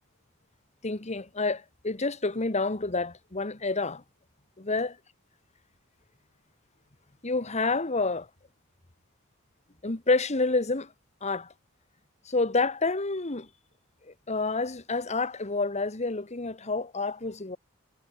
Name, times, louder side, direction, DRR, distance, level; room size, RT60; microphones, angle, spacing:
voice 1, 0.8-4.0 4.6-5.0 7.2-8.3 9.8-10.9 11.2-11.5 12.2-13.5 14.1-17.6, left 3 dB, 35° left, 1.5 m, -28 dB
head